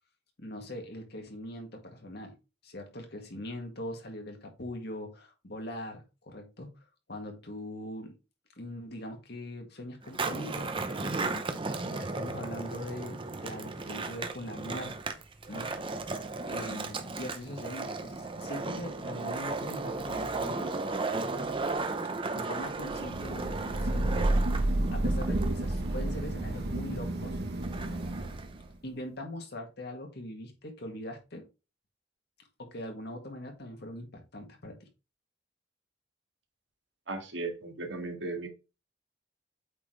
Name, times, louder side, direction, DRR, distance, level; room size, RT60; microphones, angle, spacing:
voice 1, 0.4-2.4 2.6-6.8 7.1-8.2 8.6-15.2 15.5-15.9 16.4-20.8 22.3-24.4 24.9-27.4 28.8-31.4 32.6-34.9, left 1 dB, 60° left, 1.9 m, -41 dB
Skateboard, 10.0-28.7, right 3 dB, 30° right, 0.8 m, -36 dB
Thunder / Rain, 22.9-28.6, right 1 dB, 60° right, 0.9 m, -30 dB
voice 2, 37.1-38.5, right 2 dB, 80° right, 1.9 m, -36 dB
8.3 x 4.1 x 3.3 m
head